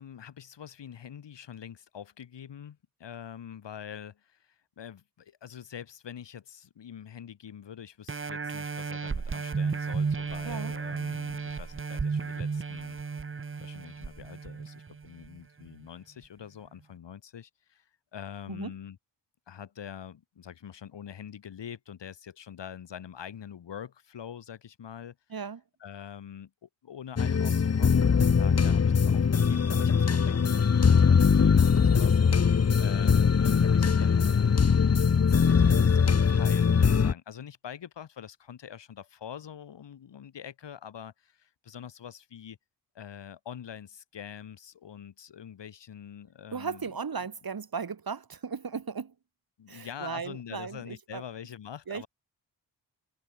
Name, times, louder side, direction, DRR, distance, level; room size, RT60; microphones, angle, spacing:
voice 1, 0.0-13.0 13.6-19.0 19.5-25.2 25.8-34.3 35.2-42.6 42.9-46.8 49.6-52.1, left 8 dB, 75° left, 6.6 m, -45 dB
sound 1, 8.1-15.3 15.8-15.9, right 5 dB, 30° right, 1.2 m, -33 dB
voice 2, 25.3-25.6 46.5-49.1 49.7-51.2 51.9-52.1, right 6 dB, 55° right, 4.6 m, -36 dB
sound 2, 27.2-37.1, left 6 dB, 35° left, 1.1 m, -22 dB
supercardioid pair, 40°, 43 cm